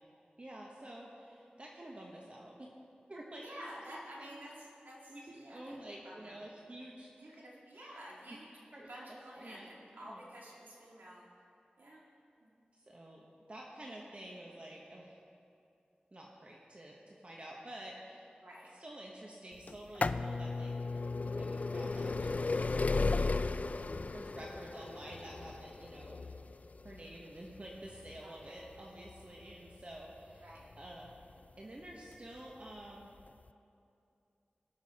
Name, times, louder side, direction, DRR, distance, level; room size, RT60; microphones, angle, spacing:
voice 1, 0.4-2.7 3.1-3.5 3.9-4.4 5.1-7.1 8.7-9.7 10.0-10.2 12.9-13.2 13.5-15.2 16.1-18.3 18.8-20.7 21.2-22.7 22.9-23.3 24.1-26.2 26.8-30.4 30.8-31.2 31.6-33.1, right 1 dB, 40° right, -2 dB, 1.1 m, -49 dB
voice 2, 3.4-5.8 6.0-6.4 7.2-8.5 8.9-11.3 11.8-12.0 12.4-12.5 18.4-18.7 20.6-20.8 28.2-28.7 30.4-30.7, equal, 85° right, -5 dB, 2.0 m, -51 dB
sound 1, 19.7-31.3 32.1-32.2 33.2-33.3 33.5-33.6, left 3 dB, 50° left, 0.3 m, -35 dB
19.0 x 6.4 x 4.2 m, 2.6 s
wide cardioid pair, 70°, 3 cm